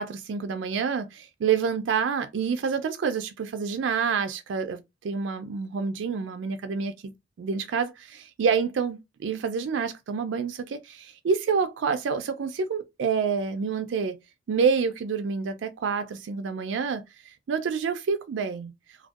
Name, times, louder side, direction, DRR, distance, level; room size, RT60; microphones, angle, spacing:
voice 1, 0.0-6.9 7.4-7.9 8.4-14.2 14.5-18.7, right 6 dB, 75° right, 0.4 m, -28 dB
2.5 x 2.2 x 2.3 m
head